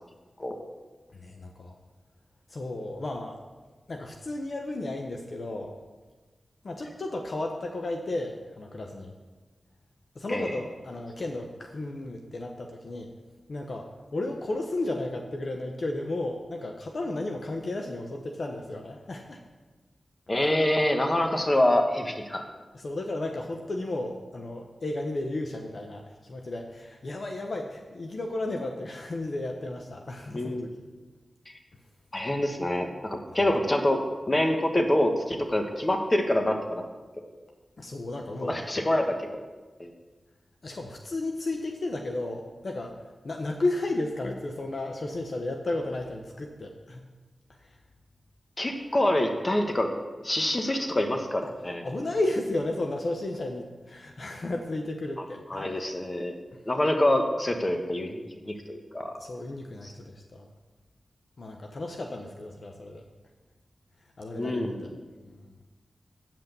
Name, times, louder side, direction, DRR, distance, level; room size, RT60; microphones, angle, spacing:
voice 1, 1.1-1.8 2.5-3.4 3.9-5.7 6.6-9.1 10.1-13.1 13.5-19.4 22.7-30.7 37.8-38.6 40.6-43.0 43.2-47.0 47.5-47.8 51.8-55.7 56.5-56.6 59.2-60.5 61.4-63.0 64.2-64.9 65.2-65.5, left 2 dB, 65° left, 3 dB, 0.8 m, -33 dB
voice 2, 20.3-22.4 30.3-30.7 32.1-36.8 38.4-39.4 39.8-39.9 48.6-49.9 50.2-51.8 55.5-56.3 56.7-59.2 59.8-59.9 64.3-64.8, left 1 dB, 35° left, 4 dB, 1.4 m, -26 dB
8.8 x 6.0 x 6.7 m, 1.3 s
cardioid pair, 40°, 0 cm